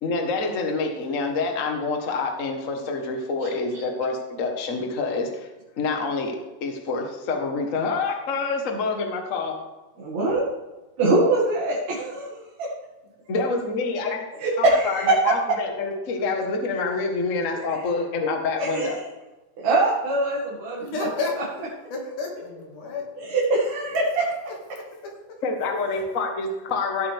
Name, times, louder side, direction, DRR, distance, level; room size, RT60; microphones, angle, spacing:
voice 1, 0.0-5.5 5.8-9.6 13.3-14.2 14.6-19.0 25.4-27.1, left 4 dB, 80° left, 3 dB, 0.7 m, -27 dB
voice 2, 3.4-3.8 10.0-10.4 11.0-12.3 14.4-15.2 17.7-17.8 18.6-19.0 19.6-20.8 23.2-23.9, right 2 dB, 55° right, -6 dB, 3.4 m, -23 dB
voice 3, 20.8-23.1 25.0-25.1 25.9-26.0, left 3 dB, 65° left, 0 dB, 3.6 m, -31 dB
17.0 x 7.9 x 3.5 m, 1.1 s
omnidirectional pair, 4.0 m